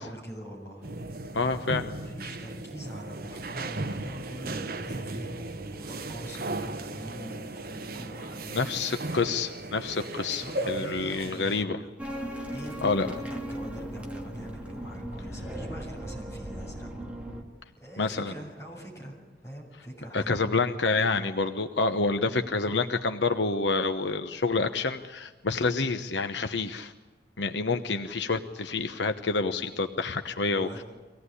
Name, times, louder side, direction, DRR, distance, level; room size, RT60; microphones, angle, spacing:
voice 1, 0.0-1.4 1.9-8.9 10.3-11.9 12.5-16.9 17.8-19.2 19.4-20.6 30.4-30.8, equal, 15° left, -2 dB, 7.6 m, -43 dB
sound 1, 0.8-11.6, right 2 dB, 55° right, 1.2 m, -36 dB
voice 2, 1.3-1.9 8.5-11.8 12.8-13.1 18.0-18.3 20.1-26.9 27.4-30.8, left 3 dB, 90° left, 7 dB, 1.0 m, -28 dB
sound 2, 12.0-17.4, equal, 5° right, 2.5 m, -37 dB
24.5 x 18.0 x 9.8 m, 1.3 s
head